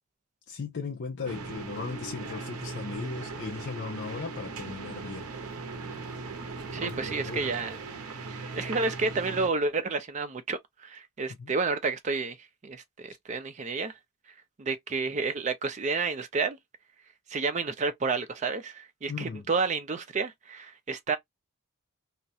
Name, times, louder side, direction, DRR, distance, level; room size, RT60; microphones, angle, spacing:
voice 1, 0.5-5.3 6.8-7.6 11.4-11.5 19.1-19.5, left 5 dB, 50° left, 0.4 m, -37 dB
sound 1, 1.2-9.5, right 3 dB, 70° right, 0.6 m, -38 dB
voice 2, 6.7-7.8 8.3-12.4 12.6-13.9 14.6-16.6 17.3-21.2, right 4 dB, 30° right, 0.4 m, -30 dB
2.4 x 2.1 x 2.7 m
head